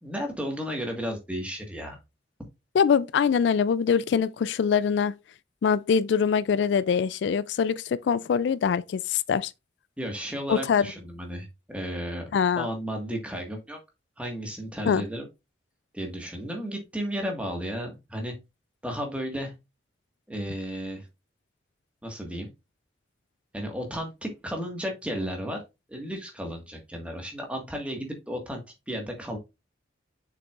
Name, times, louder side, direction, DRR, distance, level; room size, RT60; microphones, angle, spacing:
voice 1, 0.0-2.0 10.0-12.3 12.5-13.8 14.2-15.3 15.9-18.4 18.8-19.5 20.3-21.1 22.0-22.5 23.5-25.6 25.9-29.4, equal, 5° right, 1.6 m, -33 dB
voice 2, 2.7-5.1 5.6-9.5 10.5-10.9 12.3-12.7 14.9-15.0, left 6 dB, 70° left, 0.3 m, -23 dB
6.8 x 6.0 x 2.4 m
head